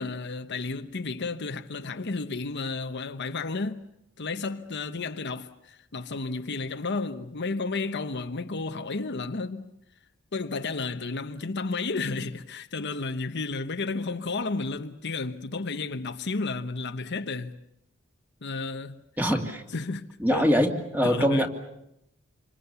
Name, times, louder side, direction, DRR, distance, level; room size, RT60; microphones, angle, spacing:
voice 1, 0.0-3.8 4.2-9.7 10.3-17.6 18.4-19.0 19.7-20.5 21.0-21.5, left 3 dB, 55° left, 1.0 m, -32 dB
voice 2, 19.2-19.6 20.2-21.5, equal, 10° right, 2.4 m, -23 dB
27.5 x 25.5 x 7.0 m
head